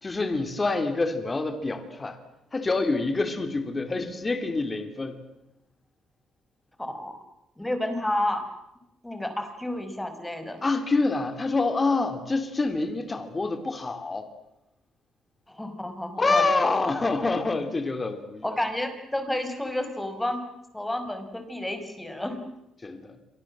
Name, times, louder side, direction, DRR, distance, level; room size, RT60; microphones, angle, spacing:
voice 1, 0.0-2.2 2.5-5.2 10.6-14.3 16.2-18.5 22.8-23.2, left 3 dB, 25° left, 8 dB, 3.1 m, -26 dB
voice 2, 6.8-7.2 7.6-8.4 9.0-10.6 15.5-16.4 18.4-20.4 20.7-22.4, left 1 dB, 10° left, 8 dB, 5.4 m, -30 dB
28.0 x 24.0 x 7.6 m, 0.89 s
cardioid pair, 90°, 0 cm